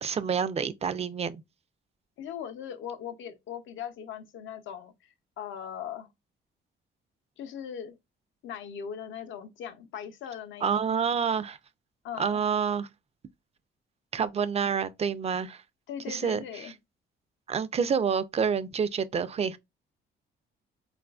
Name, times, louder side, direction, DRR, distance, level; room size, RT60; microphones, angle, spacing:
voice 1, 0.0-1.4 10.6-11.6 12.2-12.9 14.1-15.6 16.1-16.4 17.5-19.6, right 6 dB, 30° right, 0.3 m, -28 dB
voice 2, 2.2-6.1 7.4-7.9 8.4-11.0 12.0-12.4 15.9-16.7, left 8 dB, 75° left, 0.6 m, -39 dB
3.8 x 2.4 x 2.3 m
cardioid pair, 90°, 20 cm